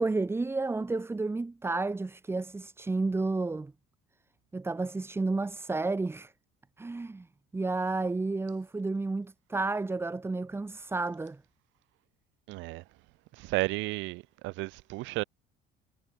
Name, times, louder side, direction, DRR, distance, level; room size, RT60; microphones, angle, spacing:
voice 1, 0.0-3.7 4.5-6.3 6.8-7.3 7.5-11.4, right 3 dB, 10° right, 3.9 m, -31 dB
voice 2, 12.5-12.8 13.4-15.2, right 21 dB, 70° right, 4.7 m, -33 dB
cardioid pair, 145°, 20 cm